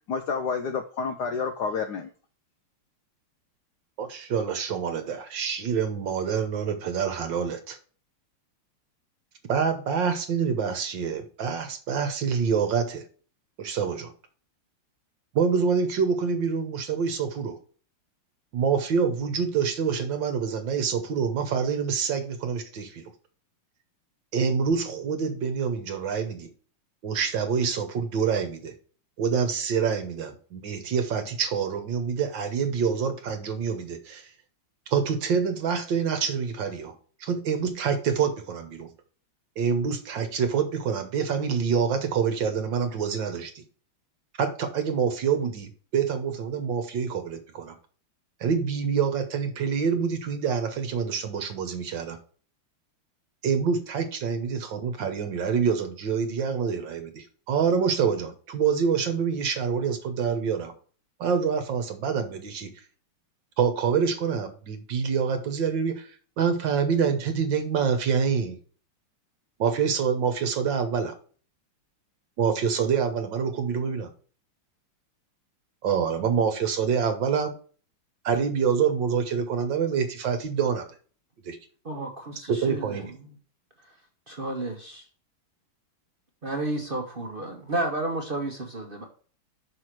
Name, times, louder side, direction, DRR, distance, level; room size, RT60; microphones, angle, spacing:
voice 1, 0.1-2.1, left 5 dB, 70° left, 1.0 m, -29 dB
voice 2, 4.0-7.8 9.5-13.0 13.6-14.1 15.3-17.6 18.5-23.1 24.3-26.5 27.0-28.7 29.2-34.3 34.9-36.9 37.2-38.9 39.6-43.6 44.4-47.7 48.4-52.2 53.4-60.7 61.2-62.7 63.6-66.1 66.4-68.6 69.6-71.1 72.4-74.1 75.8-77.5 78.2-80.9 81.4-81.6 82.5-83.1, right 6 dB, 60° right, 1.6 m, -26 dB
voice 3, 81.8-83.1 84.3-85.0 86.4-89.0, right 2 dB, 40° right, 0.8 m, -31 dB
6.1 x 4.8 x 5.9 m
omnidirectional pair, 2.4 m